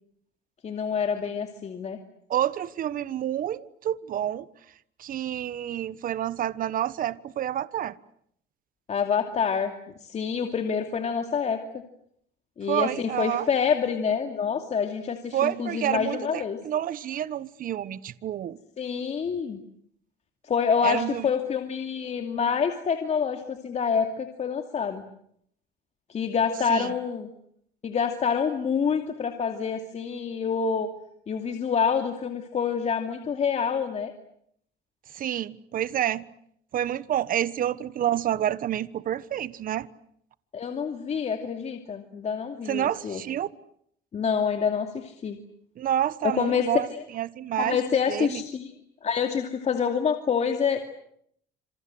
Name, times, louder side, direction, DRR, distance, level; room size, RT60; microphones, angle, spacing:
voice 1, 0.6-2.0 8.9-9.7 10.0-11.6 12.6-16.6 18.8-19.6 20.4-25.0 26.1-27.3 27.8-30.9 31.3-34.1 40.5-43.2 44.1-45.4 46.2-47.0 47.6-48.7 49.0-50.8, left 6 dB, 40° left, 2.6 m, -27 dB
voice 2, 2.3-4.5 5.0-7.9 12.7-13.5 15.3-18.6 20.8-21.3 26.7-26.9 35.1-36.2 36.7-39.9 42.7-43.5 45.8-46.9 47.1-47.8 48.1-48.4, right 11 dB, 55° right, 1.2 m, -28 dB
27.5 x 27.5 x 7.9 m
cardioid pair, 110°, 17 cm